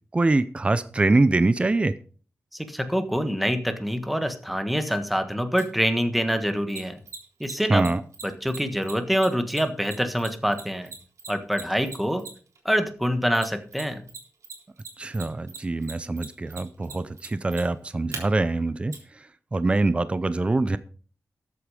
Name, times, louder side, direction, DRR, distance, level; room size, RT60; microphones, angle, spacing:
voice 1, 0.1-1.9 7.7-8.0 15.0-18.9 19.5-20.8, right 2 dB, 20° right, 14 dB, 0.6 m, -23 dB
voice 2, 2.5-7.0 7.4-7.9 8.2-10.9 11.3-12.2 12.6-14.0, equal, ahead, 8 dB, 1.5 m, -25 dB
Mechanisms, 5.6-5.7 6.7-12.6 13.3-14.2 14.4-18.2 18.9-19.0, right 5 dB, 80° right, 3.7 m, -39 dB
13.5 x 8.4 x 5.0 m, 0.41 s
wide cardioid pair, 140°, 5 cm